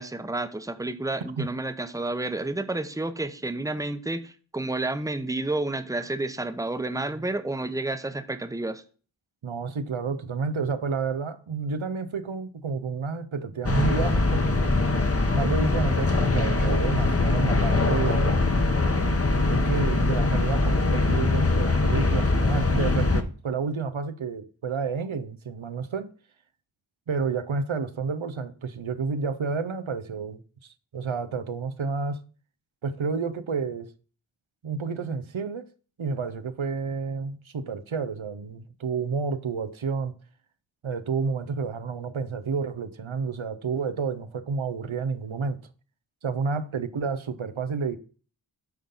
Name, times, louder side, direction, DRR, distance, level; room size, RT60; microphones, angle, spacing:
voice 1, 0.0-8.8, right 2 dB, 5° right, 0.8 m, -30 dB
voice 2, 9.4-14.8 15.3-18.4 19.4-26.1 27.1-32.2 32.8-33.9 34.6-35.7 36.0-40.1 40.8-45.6 46.2-48.0, right 5 dB, 85° right, 0.7 m, -30 dB
sound 1, 13.6-23.2, left 3 dB, 30° left, 1.0 m, -22 dB
9.1 x 3.8 x 5.5 m
wide cardioid pair, 45°, 46 cm